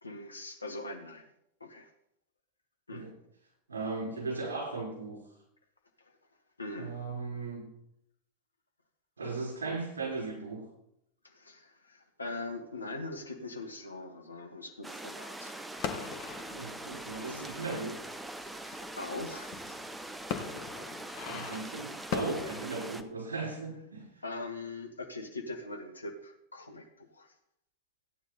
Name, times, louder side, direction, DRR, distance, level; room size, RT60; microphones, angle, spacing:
voice 1, 0.0-1.3 1.6-1.9 2.9-3.1 6.0-6.1 6.6-7.0 11.2-15.6 18.4-19.6 24.2-27.3, left 2 dB, 80° left, 5 dB, 1.6 m, -42 dB
voice 2, 3.7-5.2 6.8-7.6 9.2-10.7 16.5-18.0 21.3-24.2, right 3 dB, 70° right, -1 dB, 5.6 m, -37 dB
sound 1, 14.8-23.0, right 1 dB, 5° right, 0.9 m, -43 dB
sound 2, 15.7-22.6, left 7 dB, 45° left, 1.5 m, -41 dB
15.0 x 9.7 x 4.2 m, 0.79 s
figure-of-eight pair, 90°, 0 cm